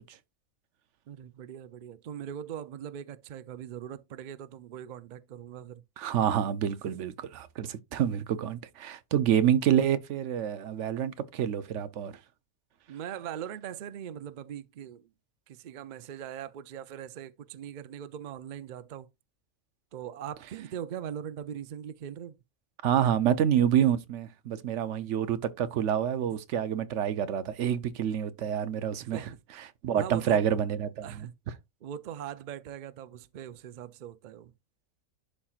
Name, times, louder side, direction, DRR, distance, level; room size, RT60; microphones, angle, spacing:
voice 1, 1.1-5.8 7.9-8.0 12.9-15.1 15.5-19.1 19.9-22.4 26.3-26.4 29.0-29.3 29.9-30.5 31.0-31.3 31.8-34.5, right 9 dB, 85° right, 0.4 m, -41 dB
voice 2, 6.0-12.1 22.8-29.3 29.8-31.3, right 9 dB, 65° right, 0.9 m, -27 dB
11.5 x 4.3 x 2.4 m
omnidirectional pair, 1.5 m